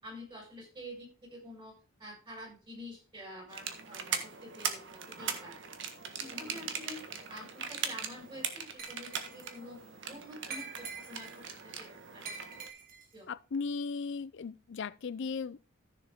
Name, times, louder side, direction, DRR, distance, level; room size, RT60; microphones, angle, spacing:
voice 1, 0.0-1.7 2.0-5.6 6.2-7.0 7.3-9.8 10.1-12.2 13.1-13.3, left 1 dB, 25° right, 5.8 m, -48 dB
sound 1, 3.5-12.7, right 7 dB, 65° right, 1.6 m, -40 dB
Glass, 8.8-9.6 10.5-11.4 12.2-13.1, right 5 dB, 45° right, 3.0 m, -45 dB
voice 2, 13.3-15.7, left 5 dB, 60° left, 0.5 m, -37 dB
14.5 x 6.9 x 3.6 m
head